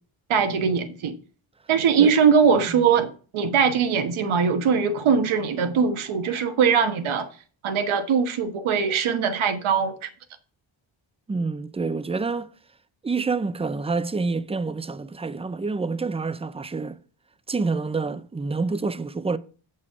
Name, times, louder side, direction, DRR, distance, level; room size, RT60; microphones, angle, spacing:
voice 1, 0.3-1.1 1.7-7.3 7.6-10.1, right 6 dB, 85° right, 1.3 m, -21 dB
voice 2, 11.3-12.5 13.0-17.0 17.5-19.4, right 4 dB, 15° right, 0.4 m, -27 dB
8.4 x 5.4 x 4.6 m
cardioid pair, 125°, 47 cm